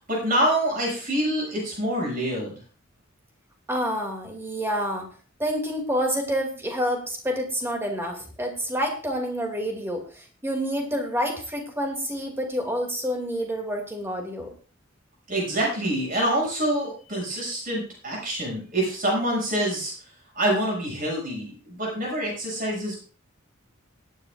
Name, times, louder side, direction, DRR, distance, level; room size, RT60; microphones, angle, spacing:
voice 1, 0.0-2.6 15.3-19.9 20.3-23.0, right 1 dB, 45° right, -3 dB, 6.9 m, -26 dB
voice 2, 3.7-5.1 5.4-14.5, equal, 10° right, 2 dB, 2.5 m, -28 dB
19.5 x 9.9 x 2.5 m, 0.39 s
head